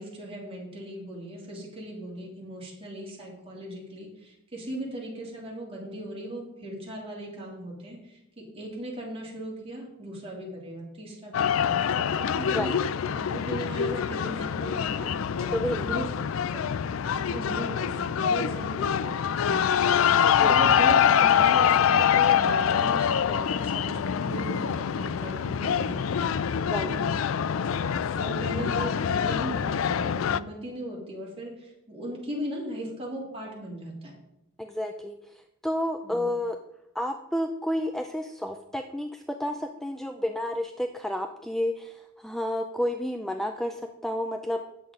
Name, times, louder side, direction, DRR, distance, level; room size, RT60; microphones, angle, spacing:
voice 1, 0.0-12.7 13.1-16.1 16.3-24.0 24.2-26.3 26.7-34.1 36.0-36.3, right 1 dB, 30° right, -3 dB, 3.3 m, -38 dB
sound 1, 11.3-30.4, left 8 dB, 80° left, 0.4 m, -25 dB
voice 2, 15.5-15.9 20.2-20.6 26.6-26.9 34.6-36.6 36.9-44.6, left 1 dB, ahead, 5 dB, 0.4 m, -31 dB
9.1 x 7.7 x 5.2 m, 0.86 s
head